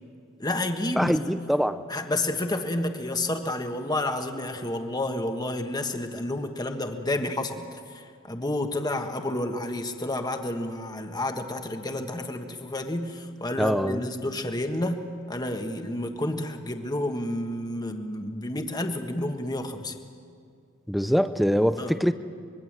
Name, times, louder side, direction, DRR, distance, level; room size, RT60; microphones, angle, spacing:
voice 1, 0.4-1.2 1.9-20.0 21.8-21.9, left 1 dB, 20° left, 5 dB, 1.5 m, -30 dB
voice 2, 1.0-1.8 13.6-14.0 20.9-22.1, equal, ahead, 11 dB, 0.6 m, -23 dB
25.5 x 21.5 x 7.5 m, 2.3 s
head